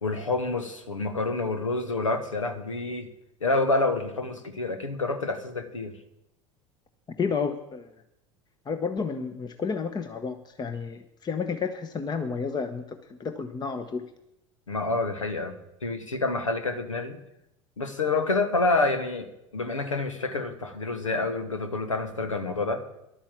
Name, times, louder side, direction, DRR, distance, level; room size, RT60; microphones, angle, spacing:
voice 1, 0.0-3.1 3.4-5.9 14.7-17.2 17.8-22.8, left 3 dB, 90° left, 9 dB, 1.1 m, -28 dB
voice 2, 7.2-7.9 8.7-14.0, left 5 dB, 25° left, 8 dB, 1.0 m, -31 dB
11.5 x 8.7 x 7.3 m, 0.84 s
hypercardioid pair, 75°, 16 cm